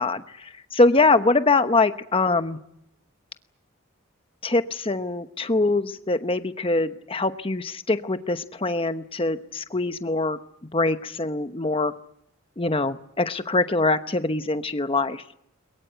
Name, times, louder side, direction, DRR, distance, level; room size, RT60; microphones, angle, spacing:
voice 1, 0.0-2.6 4.4-10.4 10.7-11.9 12.6-15.2, left 3 dB, 25° left, 10 dB, 1.0 m, -23 dB
22.0 x 22.0 x 9.1 m, 0.77 s
head